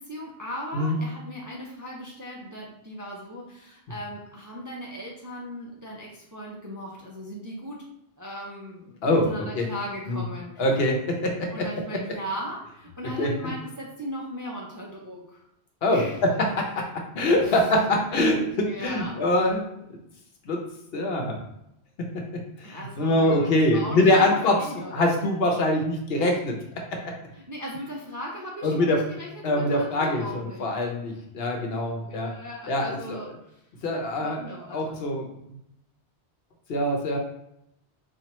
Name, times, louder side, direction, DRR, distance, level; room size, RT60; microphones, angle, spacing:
voice 1, 0.0-7.8 8.2-10.7 11.5-15.4 15.9-16.2 17.4-17.7 18.7-19.2 22.6-24.3 24.6-25.1 27.3-30.6 32.1-33.9 34.2-34.9, equal, 30° right, -3 dB, 0.4 m, -38 dB
voice 2, 9.0-9.7 10.1-10.2 10.6-11.6 13.2-13.3 15.8-16.3 16.5-16.9 17.1-19.6 19.9-20.0 20.4-20.6 20.9-21.4 22.0-24.6 24.9-26.6 27.0-27.1 28.6-29.0 29.4-32.3 32.7-33.2 33.8-34.4 34.7-35.3 36.7-37.2, left 1 dB, 65° left, 1 dB, 0.9 m, -24 dB
4.3 x 2.4 x 3.0 m, 0.79 s
omnidirectional pair, 1.1 m